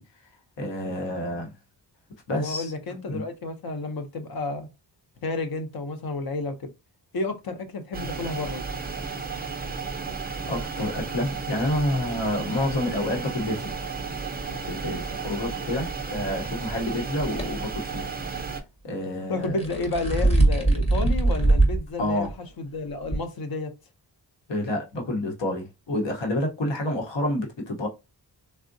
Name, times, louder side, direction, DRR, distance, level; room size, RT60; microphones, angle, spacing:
voice 1, 0.6-1.5 2.3-2.7 3.1-3.2 10.5-13.8 14.5-18.0 18.8-19.6 22.0-22.3 24.5-27.9, left 1 dB, 75° left, 0.9 m, -28 dB
voice 2, 2.3-4.7 5.2-6.7 7.1-8.6 19.3-22.3 22.6-23.7, left 2 dB, 55° left, 0.6 m, -31 dB
sound 1, 7.9-18.6, right 5 dB, 20° right, 0.5 m, -33 dB
sound 2, 17.4-17.5 19.4-21.8 22.2-22.3 23.1-23.2, right 2 dB, 15° left, 0.7 m, -20 dB
3.5 x 2.1 x 2.5 m
wide cardioid pair, 160°, 44 cm